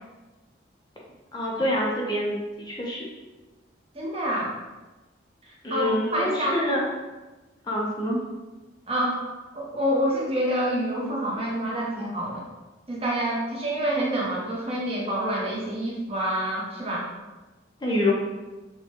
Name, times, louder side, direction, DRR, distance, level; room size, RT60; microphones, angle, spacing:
voice 1, 1.3-3.1 5.6-6.8 7.6-8.2 17.8-18.1, left 1 dB, 20° left, -3 dB, 0.5 m, -26 dB
voice 2, 3.9-4.5 5.5-6.6 8.9-9.2 9.5-12.4 12.9-17.0 17.9-18.0, right 1 dB, 30° right, -4 dB, 0.8 m, -27 dB
6.3 x 2.2 x 2.9 m, 1.2 s
head